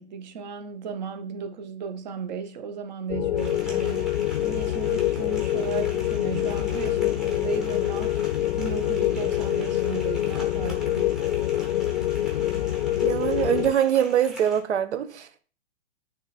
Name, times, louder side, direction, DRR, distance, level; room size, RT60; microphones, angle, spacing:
voice 1, 0.0-4.1 4.4-8.2 8.6-11.2, right 6 dB, 40° right, 1.0 m, -35 dB
sound 1, 3.1-13.7, left 13 dB, 55° left, 0.6 m, -26 dB
sound 2, 3.4-14.6, right 1 dB, ahead, 0.8 m, -44 dB
voice 2, 13.0-15.3, right 10 dB, 70° right, 1.2 m, -23 dB
9.1 x 3.4 x 4.2 m
hypercardioid pair, 165°, 36 cm